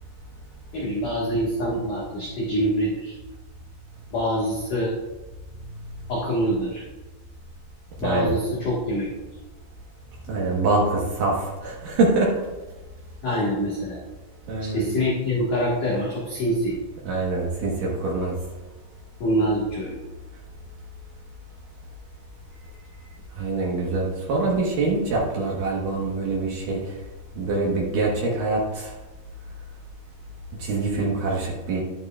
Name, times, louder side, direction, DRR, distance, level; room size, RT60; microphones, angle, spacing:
voice 1, 0.7-3.1 4.1-4.9 6.1-6.8 8.0-9.1 13.2-14.0 14.6-16.8 19.2-20.0, equal, 60° left, -5 dB, 2.1 m, -25 dB
voice 2, 8.0-8.3 10.3-12.3 14.5-14.9 17.0-18.3 23.4-26.9 27.4-28.9 30.6-31.8, right 3 dB, 80° right, -3 dB, 2.0 m, -24 dB
11.0 x 9.3 x 2.4 m, 1.2 s
omnidirectional pair, 5.8 m